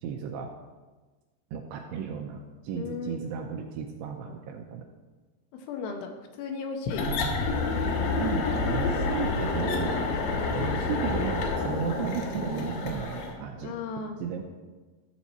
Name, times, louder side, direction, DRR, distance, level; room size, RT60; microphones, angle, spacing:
voice 1, 0.0-0.5 1.5-4.9 8.2-10.0 10.5-13.8 14.2-14.4, right 7 dB, 85° right, 3 dB, 2.5 m, -34 dB
voice 2, 2.8-3.2 5.7-6.1 6.4-7.2 13.6-14.2, left 5 dB, 85° left, 3 dB, 3.5 m, -34 dB
sound 1, 6.9-13.3, left 3 dB, 65° left, 2.3 m, -28 dB
13.0 x 7.3 x 4.1 m, 1.3 s
omnidirectional pair, 5.4 m